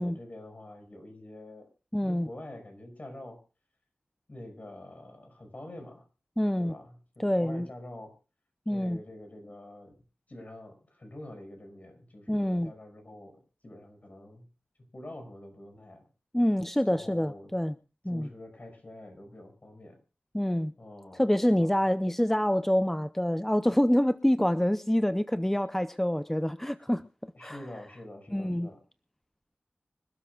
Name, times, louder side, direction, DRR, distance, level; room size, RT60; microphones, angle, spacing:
voice 1, 0.0-1.7 2.0-3.4 4.3-6.0 6.6-8.2 8.7-9.9 10.3-14.5 14.9-16.0 16.9-17.5 18.1-20.0 20.8-21.2 21.5-21.8 27.4-28.8, left 1 dB, 45° left, 5.7 m, -46 dB
voice 2, 1.9-2.3 6.4-6.7 7.2-7.7 8.7-9.0 12.3-12.7 16.3-17.7 18.0-18.3 20.3-20.7 21.2-27.6 28.3-28.7, equal, 10° left, 0.6 m, -26 dB
25.5 x 13.0 x 2.4 m
wide cardioid pair, 90°, 4 cm